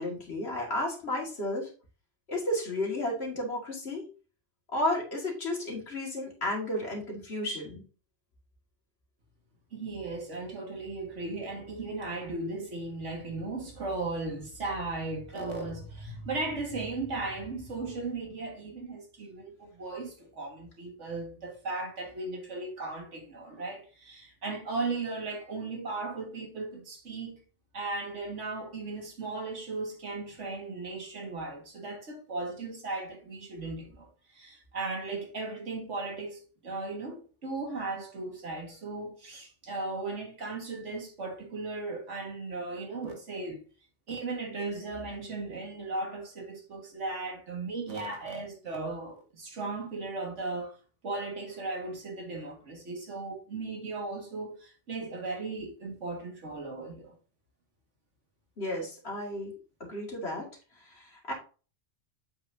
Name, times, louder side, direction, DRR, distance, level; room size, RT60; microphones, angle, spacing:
voice 1, 0.0-1.7 2.3-4.1 4.7-7.8 58.6-59.5 59.8-60.5 60.9-61.3, left 1 dB, 60° left, 2.3 m, -33 dB
voice 2, 9.7-27.4 27.7-34.1 34.3-43.6 44.1-50.7 51.0-57.1, right 3 dB, 90° right, 2.1 m, -36 dB
7.8 x 5.8 x 2.7 m
omnidirectional pair, 1.2 m